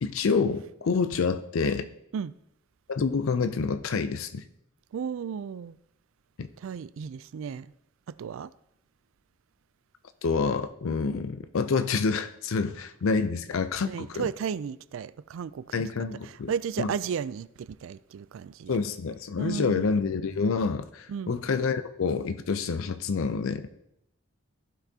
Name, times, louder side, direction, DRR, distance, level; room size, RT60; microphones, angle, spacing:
voice 1, 0.0-1.9 2.9-4.4 6.4-6.5 10.2-14.3 15.7-16.5 16.8-16.9 18.7-23.7, left 4 dB, 75° left, 0.4 m, -27 dB
voice 2, 4.9-5.7 6.6-7.7 8.1-8.5 13.9-15.7 16.2-18.8 19.4-19.9 21.1-21.3, right 7 dB, 70° right, 0.3 m, -34 dB
15.5 x 5.9 x 2.8 m
head